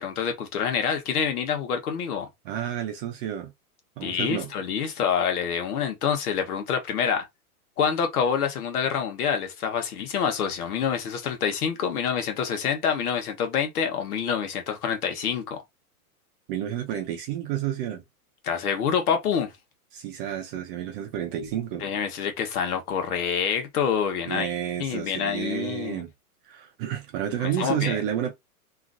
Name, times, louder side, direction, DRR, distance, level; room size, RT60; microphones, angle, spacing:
voice 1, 0.0-2.3 4.0-7.3 7.8-15.6 18.4-19.5 21.8-24.5 24.8-26.0 27.4-28.0, left 7 dB, 80° left, 1.2 m, -27 dB
voice 2, 2.4-3.5 4.0-4.5 16.5-18.0 19.9-21.9 24.3-26.1 26.4-28.3, right 10 dB, 35° right, 0.6 m, -30 dB
3.0 x 2.5 x 2.5 m
hypercardioid pair, 145°, 45 cm